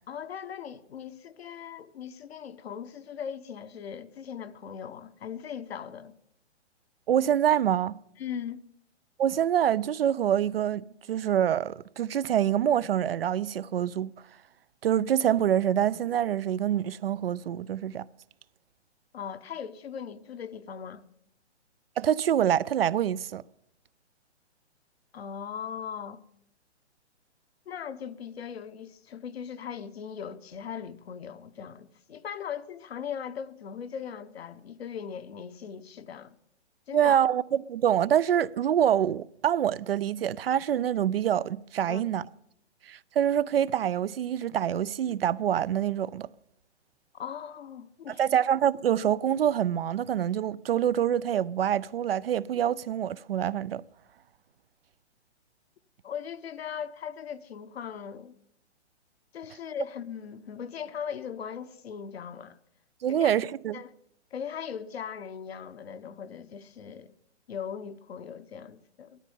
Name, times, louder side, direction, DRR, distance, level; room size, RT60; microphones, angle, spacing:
voice 1, 0.1-6.1 8.2-8.6 19.1-21.0 25.1-26.2 27.7-36.4 36.9-37.2 41.9-42.0 47.1-48.3 56.0-58.4 59.3-62.6 63.1-63.4 63.7-63.9 64.3-67.1 67.5-69.2, left 8 dB, 60° left, 1.0 m, -39 dB
voice 2, 7.1-8.0 9.2-14.1 14.8-18.0 22.0-23.4 36.9-42.2 42.9-46.3 48.2-53.8 63.0-63.8, right 10 dB, 55° right, 0.5 m, -26 dB
16.0 x 13.0 x 5.4 m
figure-of-eight pair, 130°, 35 cm